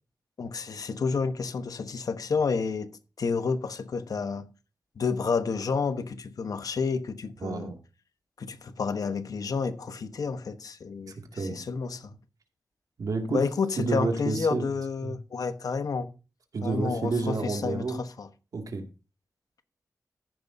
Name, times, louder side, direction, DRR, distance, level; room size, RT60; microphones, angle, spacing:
voice 1, 0.4-2.9 3.2-4.5 5.0-7.7 8.4-12.2 13.3-16.1 16.6-18.3, left 5 dB, 75° left, 1.1 m, -30 dB
voice 2, 7.4-7.8 11.3-11.6 13.0-13.4 13.8-14.6 15.0-15.1 16.5-18.0 18.5-18.9, right 3 dB, 75° right, 2.3 m, -29 dB
14.0 x 11.0 x 2.7 m
wide cardioid pair, 120°, 6 cm